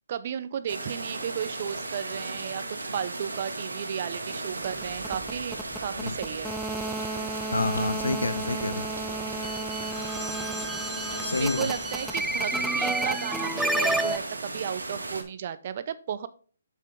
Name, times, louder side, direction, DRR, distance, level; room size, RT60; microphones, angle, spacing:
voice 1, 0.1-6.6 10.4-16.3, right 8 dB, 45° right, 0.7 m, -34 dB
sound 1, 0.7-15.2, right 2 dB, 80° right, 1.8 m, -36 dB
sound 2, 4.6-14.2, right 2 dB, ahead, 0.3 m, -31 dB
voice 2, 7.5-8.9 11.2-11.7, left 3 dB, 85° left, 0.6 m, -28 dB
7.4 x 5.6 x 3.7 m
figure-of-eight pair, 140°, 0 cm